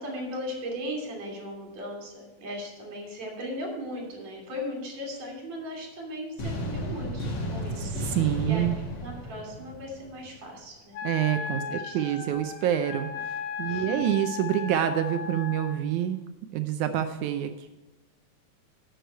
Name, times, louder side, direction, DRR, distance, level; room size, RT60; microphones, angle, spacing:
voice 1, 0.0-7.9 8.4-8.7 9.0-11.0 11.6-12.0 13.6-14.2, equal, 60° right, 0 dB, 4.2 m, -37 dB
sound 1, 6.4-10.4, equal, 45° left, 2.0 m, -33 dB
voice 2, 7.8-8.8 11.0-16.2 16.5-17.7, right 11 dB, 80° right, 8 dB, 2.0 m, -27 dB
Wind instrument woodwind instrument, 10.9-15.8, left 6 dB, 85° left, 2.7 m, -36 dB
11.5 x 8.0 x 4.5 m, 1.1 s
omnidirectional pair, 3.6 m